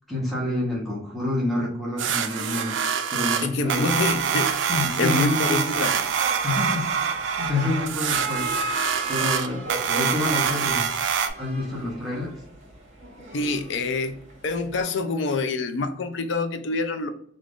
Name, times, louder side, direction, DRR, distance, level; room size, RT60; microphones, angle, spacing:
voice 1, 0.1-2.8 3.1-3.8 4.7-5.7 6.4-7.1 7.4-8.5 9.1-10.9 11.4-12.4, left 2 dB, ahead, 0.8 m, -28 dB
sound 1, 2.0-11.3, right 7 dB, 65° right, 0.4 m, -25 dB
voice 2, 3.4-4.5 5.0-5.9 13.3-17.1, left 3 dB, 65° left, 0.4 m, -26 dB
sound 2, 3.6-14.8, right 2 dB, 35° right, 0.8 m, -36 dB
2.5 x 2.5 x 3.4 m
head